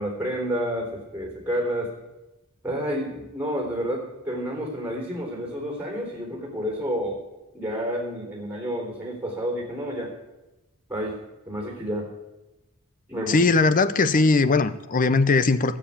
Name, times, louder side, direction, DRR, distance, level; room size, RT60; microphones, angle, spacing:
voice 1, 0.0-1.9 2.6-7.2 7.5-10.1 10.9-11.2 11.5-12.1 13.1-13.4, equal, 5° right, 3.7 m, -29 dB
voice 2, 13.3-15.8, left 3 dB, 40° left, 0.6 m, -20 dB
13.0 x 7.4 x 8.4 m
head